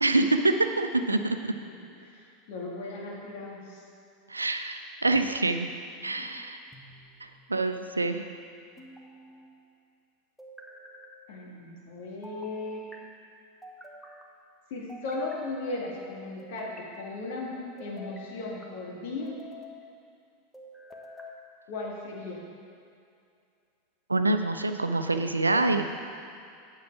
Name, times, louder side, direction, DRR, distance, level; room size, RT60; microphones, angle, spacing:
voice 1, 0.0-1.4 4.3-5.7 6.0-6.6 7.5-8.3 24.1-25.9, right 2 dB, 85° right, 8 dB, 0.5 m, -26 dB
voice 2, 1.1-1.7 2.0-3.8 6.0-6.3 11.3-12.9 14.7-19.3 21.7-22.4, left 2 dB, 60° left, -3 dB, 2.1 m, -37 dB
sound 1, 6.7-7.4 8.8-9.5 10.4-11.2 12.2-13.0 13.6-14.3 14.9-15.7 16.4-17.0 17.8-18.7 19.3-19.8 20.5-21.4, left 1 dB, 5° left, 1.2 m, -48 dB
8.6 x 8.5 x 4.7 m, 2.4 s
figure-of-eight pair, 85°, 0 cm